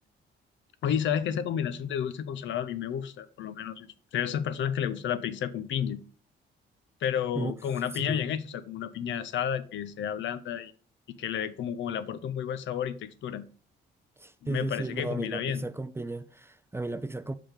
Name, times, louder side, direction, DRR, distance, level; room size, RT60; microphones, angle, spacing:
voice 1, 0.8-6.0 7.0-10.7 11.2-13.4 14.4-15.7, left 9 dB, 70° left, 0.7 m, -31 dB
voice 2, 14.2-17.4, right 2 dB, 10° right, 0.5 m, -35 dB
6.0 x 5.0 x 5.0 m
cardioid pair, 90°, 20 cm